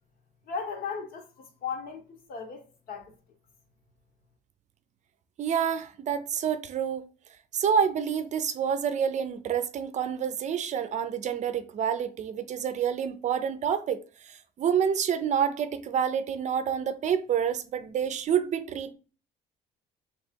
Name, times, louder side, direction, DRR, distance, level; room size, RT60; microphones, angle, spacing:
voice 1, 0.5-3.1, left 5 dB, 60° left, 1.2 m, -37 dB
voice 2, 5.4-7.1 7.5-18.9, right 8 dB, 45° right, 0.6 m, -28 dB
3.2 x 2.9 x 4.5 m
cardioid pair, 110°, 17 cm